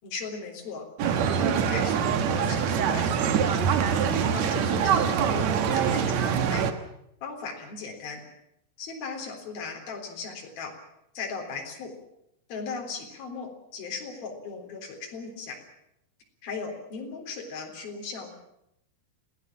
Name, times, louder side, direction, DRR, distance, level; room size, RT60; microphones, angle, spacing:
voice 1, 0.0-0.9 1.4-3.6 4.1-6.6 7.2-8.2 8.8-10.7 11.1-11.9 12.5-15.6 16.4-18.3, left 4 dB, 60° left, 2 dB, 5.5 m, -37 dB
sound 1, 1.0-6.7, right 7 dB, 60° right, 2.0 m, -24 dB
26.5 x 18.0 x 7.5 m, 0.80 s
omnidirectional pair, 4.8 m